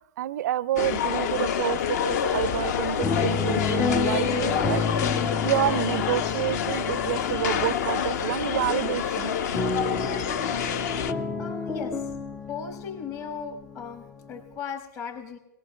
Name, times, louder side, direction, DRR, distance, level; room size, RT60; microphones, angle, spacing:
voice 1, 0.2-4.8 5.4-9.3, right 13 dB, 50° right, 20 dB, 0.4 m, -28 dB
sound 1, 0.7-1.5 1.8-14.5, left 4 dB, 5° left, 0.4 m, -32 dB
sound 2, 0.8-11.1, left 8 dB, 50° left, 0.8 m, -27 dB
sound 3, 2.4-5.8, left 5 dB, 70° left, 3.1 m, -39 dB
voice 2, 11.4-12.1 12.5-15.4, left 6 dB, 25° left, 7 dB, 1.1 m, -37 dB
23.0 x 18.0 x 2.2 m, 0.95 s
figure-of-eight pair, 115°, 12 cm